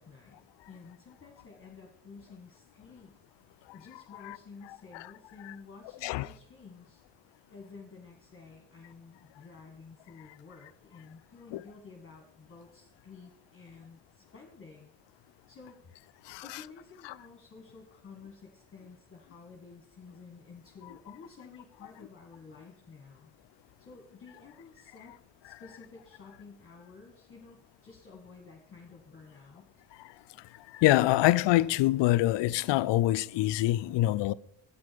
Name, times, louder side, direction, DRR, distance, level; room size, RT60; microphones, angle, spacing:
voice 1, 0.0-3.1 3.7-7.0 7.5-14.9 15.5-16.0 16.4-23.3 23.8-25.2 25.4-29.7, left 4 dB, 25° left, 1.5 m, -52 dB
voice 2, 30.7-34.3, left 16 dB, 60° left, 0.5 m, -25 dB
8.3 x 6.2 x 6.7 m
supercardioid pair, 65°, 49 cm